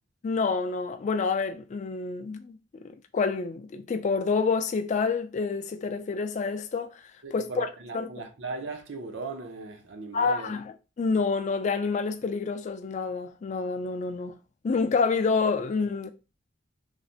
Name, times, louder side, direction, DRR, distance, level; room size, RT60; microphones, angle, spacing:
voice 1, 0.2-2.6 2.8-7.0 7.3-7.7 7.9-8.1 10.1-10.7 11.0-14.4 14.6-16.1, left 4 dB, 40° left, 0.3 m, -28 dB
voice 2, 7.2-10.6, right 3 dB, 85° right, 0.6 m, -38 dB
3.1 x 2.0 x 2.7 m
head